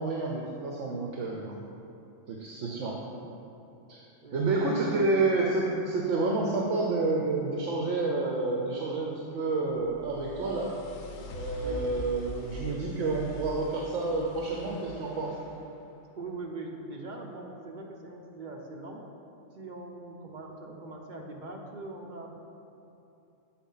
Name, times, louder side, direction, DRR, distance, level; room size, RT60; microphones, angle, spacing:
voice 1, 0.0-1.6 2.3-3.0 3.9-4.0 4.3-10.7 11.3-15.4, right 3 dB, 70° right, -2 dB, 1.0 m, -29 dB
voice 2, 0.9-1.4 2.6-3.2 4.2-5.3 11.6-12.1 16.2-19.0 19.5-22.4, right 2 dB, 50° right, 0 dB, 0.7 m, -42 dB
sound 1, 9.7-15.7, left 2 dB, 65° left, 0.9 m, -43 dB
7.6 x 4.4 x 5.4 m, 2.8 s
omnidirectional pair, 1.3 m